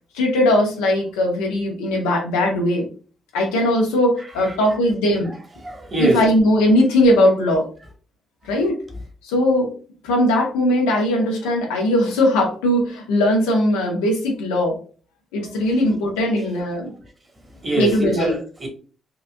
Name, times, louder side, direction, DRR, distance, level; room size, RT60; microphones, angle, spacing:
voice 1, 0.1-2.8 3.3-5.3 6.0-7.7 8.4-8.7 9.2-9.7 10.0-14.8 15.3-16.9 17.8-18.3, left 1 dB, 85° left, 0.8 m, -19 dB
voice 2, 4.4-4.8 5.6-6.2 16.4-16.5 17.5-18.7, right 2 dB, 35° right, 1.3 m, -24 dB
3.9 x 2.5 x 2.2 m
hypercardioid pair, 45°, 0 cm